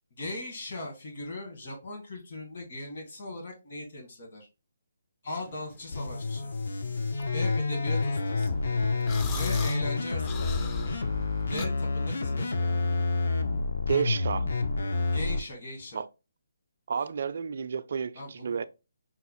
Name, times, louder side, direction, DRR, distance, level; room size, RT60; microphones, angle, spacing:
voice 1, 0.2-4.5 5.2-6.5 7.3-8.6 9.3-11.0 11.5-12.8 15.1-16.0 18.1-18.7, left 1 dB, 55° left, 1.6 m, -39 dB
sound 1, 5.5-11.7, left 5 dB, 25° left, 0.4 m, -39 dB
sound 2, 5.9-15.4, left 3 dB, 70° left, 0.6 m, -29 dB
voice 2, 13.9-14.5 15.9-16.1 16.9-18.6, right 6 dB, 60° right, 0.3 m, -30 dB
5.6 x 2.0 x 2.9 m
figure-of-eight pair, 150°, 0 cm